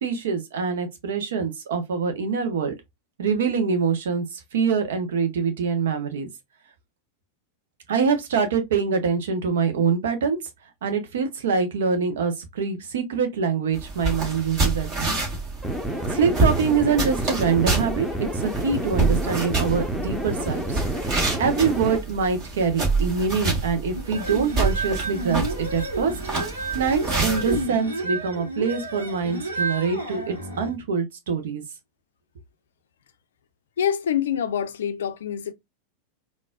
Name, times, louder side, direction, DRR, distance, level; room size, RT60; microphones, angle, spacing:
voice 1, 0.0-2.7 3.2-6.3 7.9-10.4 10.8-15.2 16.1-20.8 21.4-26.1 26.7-31.6, right 5 dB, 60° right, 0.9 m, -24 dB
sound 1, 13.7-27.6, right 3 dB, 40° right, 2.0 m, -27 dB
sound 2, 15.6-22.0, right 1 dB, 5° right, 0.9 m, -29 dB
sound 3, 24.0-30.7, right 2 dB, 85° right, 1.2 m, -30 dB
voice 2, 33.8-35.5, left 9 dB, 65° left, 0.4 m, -25 dB
4.0 x 2.5 x 2.3 m
figure-of-eight pair, 90°, 0 cm